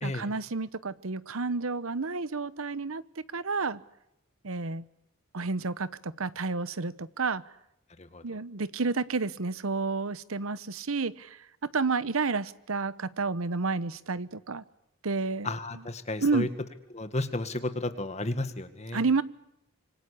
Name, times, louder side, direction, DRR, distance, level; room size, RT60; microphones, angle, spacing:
voice 1, 0.0-3.0 3.3-3.8 4.4-4.9 5.3-7.4 8.2-11.4 11.7-14.6 15.0-15.5 16.2-16.5 18.9-19.2, right 4 dB, 75° right, 17 dB, 1.0 m, -30 dB
voice 2, 8.0-8.4 15.4-16.5 16.9-19.1, left 2 dB, 30° left, 9 dB, 1.8 m, -33 dB
26.0 x 24.5 x 8.4 m, 0.81 s
head